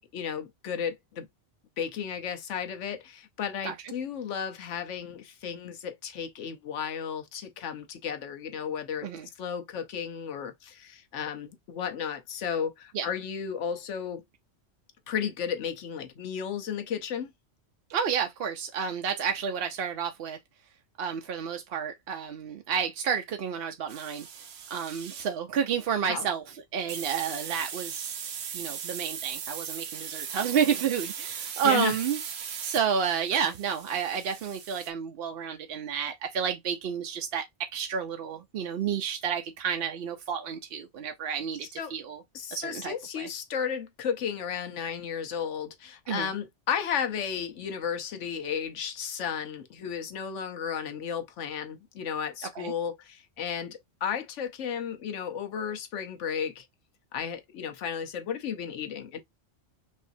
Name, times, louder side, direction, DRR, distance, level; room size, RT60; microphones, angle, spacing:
voice 1, 0.1-1.3 1.8-9.1 9.4-14.2 15.1-17.3 26.1-26.3 31.6-32.0 41.8-41.9 42.3-56.7 57.1-59.2, left 7 dB, 80° left, 1.1 m, -33 dB
voice 2, 17.9-20.4 21.0-24.3 24.7-28.1 28.5-42.2 42.5-43.3 46.1-46.3 52.6-52.7, right 7 dB, 60° right, 0.7 m, -30 dB
sound 1, 23.9-25.3 26.9-34.9, right 7 dB, 85° right, 1.1 m, -39 dB
5.4 x 2.7 x 2.6 m
omnidirectional pair, 1.2 m